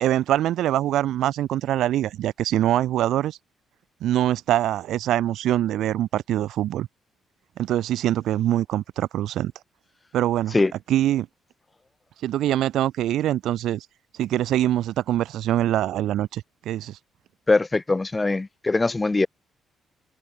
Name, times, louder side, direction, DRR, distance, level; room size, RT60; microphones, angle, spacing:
voice 1, 0.0-3.4 4.0-6.9 7.6-9.5 10.1-10.5 10.9-11.3 12.2-13.9 14.2-17.0, right 13 dB, 80° right, 0.5 m, -23 dB
voice 2, 17.5-19.3, left 3 dB, 20° left, 0.5 m, -21 dB
cardioid pair, 90°, 0 cm